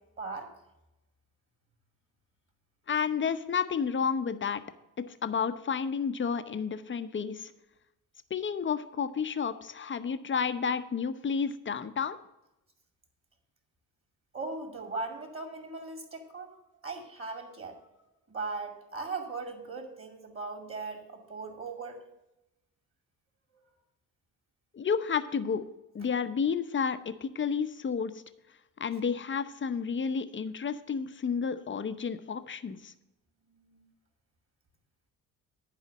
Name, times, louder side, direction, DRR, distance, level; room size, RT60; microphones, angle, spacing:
voice 1, 0.2-0.5 14.3-16.6 16.8-17.8 18.3-22.0 33.6-33.9, right 3 dB, 25° right, 4 dB, 2.5 m, -38 dB
voice 2, 2.9-4.6 5.0-7.5 8.3-12.2 24.7-25.7 25.9-28.2 28.8-32.9, left 6 dB, 25° left, 12 dB, 0.7 m, -31 dB
10.5 x 4.9 x 7.6 m, 0.94 s
figure-of-eight pair, 45°, 47 cm